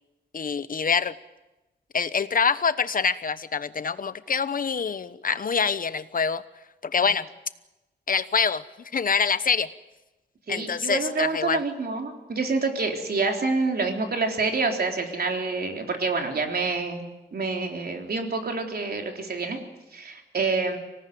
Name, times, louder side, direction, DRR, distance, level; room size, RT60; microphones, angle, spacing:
voice 1, 0.3-1.1 1.9-6.4 6.8-7.3 8.1-9.7 10.5-11.6, left 6 dB, 50° left, 14 dB, 1.0 m, -25 dB
voice 2, 10.5-17.0 17.3-19.6 19.9-20.8, right 4 dB, 55° right, 3 dB, 3.7 m, -27 dB
25.0 x 18.5 x 9.4 m, 1.0 s
wide cardioid pair, 125°, 19 cm